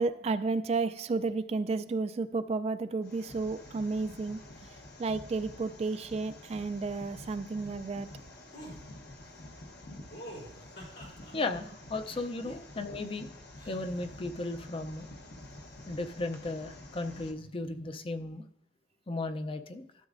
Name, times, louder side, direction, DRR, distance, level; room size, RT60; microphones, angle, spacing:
voice 1, 0.0-4.4 5.0-8.1, right 3 dB, 35° right, 11 dB, 0.3 m, -32 dB
sound 1, 3.0-17.3, left 1 dB, 65° left, 1.0 m, -49 dB
sound 2, 8.5-8.8 10.1-11.3 12.0-13.0 13.6-14.1, equal, 85° left, 3.4 m, -46 dB
voice 2, 11.3-13.3 13.7-15.1 15.9-18.4 19.1-19.9, left 2 dB, 30° left, 9 dB, 0.5 m, -35 dB
12.5 x 7.2 x 2.5 m, 0.77 s
head